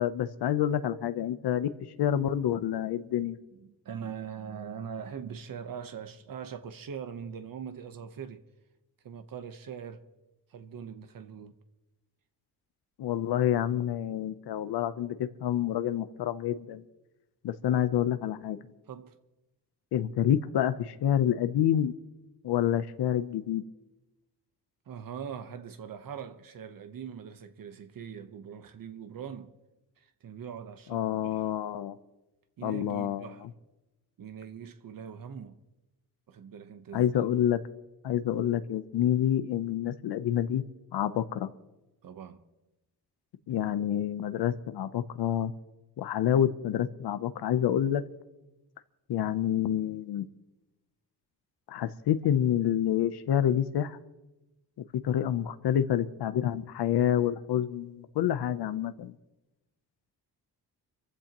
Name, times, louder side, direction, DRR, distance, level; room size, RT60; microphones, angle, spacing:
voice 1, 0.0-1.7 2.0-3.4 13.0-16.8 17.4-18.6 19.9-21.9 22.4-23.6 30.9-32.0 32.6-33.3 36.9-37.6 38.0-40.6 40.9-41.5 43.5-45.5 46.0-48.0 49.1-50.3 51.7-54.0 55.0-59.1, left 10 dB, 85° left, 0.8 m, -28 dB
voice 2, 3.2-8.4 9.0-10.0 10.5-11.5 18.9-19.2 24.9-29.5 30.0-31.5 32.6-33.5 34.2-35.6 36.3-37.1 42.0-42.4 55.9-56.0, right 7 dB, 60° right, 1.0 m, -42 dB
27.0 x 15.0 x 3.0 m
wide cardioid pair, 145°, 39 cm